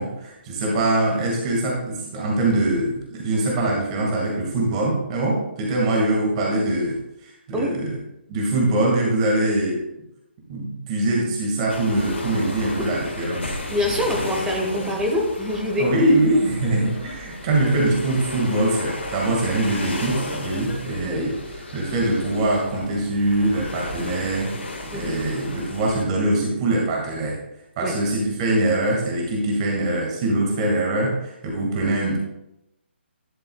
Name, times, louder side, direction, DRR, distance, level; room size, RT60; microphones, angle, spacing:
voice 1, 0.0-8.0 8.3-9.8 10.5-13.5 15.8-24.5 24.9-27.4 27.8-32.2, right 2 dB, 30° right, -1 dB, 2.0 m, -23 dB
sound 1, 11.7-26.0, left 2 dB, 80° left, 1.8 m, -34 dB
voice 2, 13.7-15.8 21.0-21.3 24.9-25.1 27.8-27.9, left 1 dB, 10° right, 0 dB, 1.0 m, -25 dB
11.5 x 6.8 x 2.3 m, 0.84 s
figure-of-eight pair, 145°, 6 cm